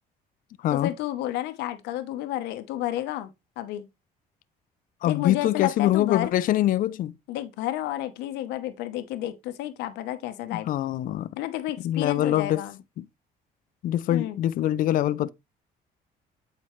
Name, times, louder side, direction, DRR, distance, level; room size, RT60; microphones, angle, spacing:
voice 1, 0.7-3.9 5.0-6.3 7.3-10.7 11.4-12.8 14.1-14.4, left 13 dB, 90° left, 0.9 m, -31 dB
voice 2, 5.0-7.1 10.5-11.4 11.8-12.6 13.0-13.1 13.8-15.3, left 13 dB, 55° left, 0.4 m, -24 dB
8.3 x 4.4 x 3.1 m
cardioid pair, 110°, 17 cm